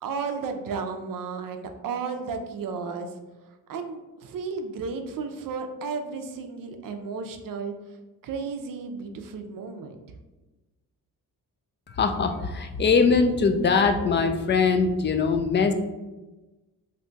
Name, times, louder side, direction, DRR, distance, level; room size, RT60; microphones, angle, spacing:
voice 1, 0.0-3.1 3.7-7.7 8.2-10.0, right 5 dB, 65° right, 6 dB, 0.5 m, -33 dB
voice 2, 11.9-15.7, left 5 dB, 30° left, 7 dB, 0.4 m, -22 dB
2.7 x 2.2 x 3.9 m, 1.1 s
cardioid pair, 75°, 37 cm